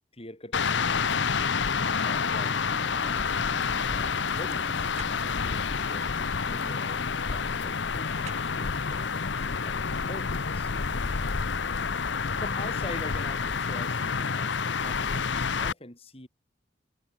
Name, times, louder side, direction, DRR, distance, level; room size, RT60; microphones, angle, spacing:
voice 1, 0.1-1.3 1.9-3.3 3.8-4.9 5.4-9.1 9.6-11.6 12.1-16.3, left 1 dB, 30° left, 5.1 m, -44 dB
sound 1, 0.5-15.7, left 5 dB, 65° left, 0.8 m, -28 dB
sound 2, 1.6-9.4 9.8-9.9, equal, ahead, 2.5 m, -50 dB
sound 3, 2.5-11.8, right 5 dB, 35° right, 2.7 m, -55 dB
head